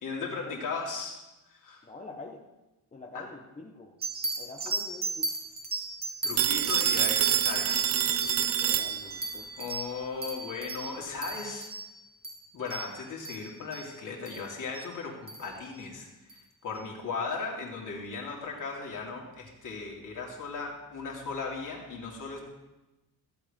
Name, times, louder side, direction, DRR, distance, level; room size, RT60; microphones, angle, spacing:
voice 1, 0.0-1.2 1.5-1.8 3.1-3.3 6.2-7.8 9.6-11.7 12.5-22.4, left 4 dB, 50° left, -1 dB, 2.8 m, -37 dB
voice 2, 1.8-2.4 2.9-3.9 4.4-5.3 8.2-9.5, left 3 dB, 20° left, 0 dB, 1.0 m, -46 dB
sound 1, 4.0-13.9 14.2-14.5 14.7-14.9 15.3-15.6 16.3-16.4, right 3 dB, 25° right, 1.5 m, -37 dB
Telephone, 6.4-9.4, right 9 dB, 40° right, 0.5 m, -26 dB
14.5 x 8.0 x 5.2 m, 1.0 s
cardioid pair, 130°, 40 cm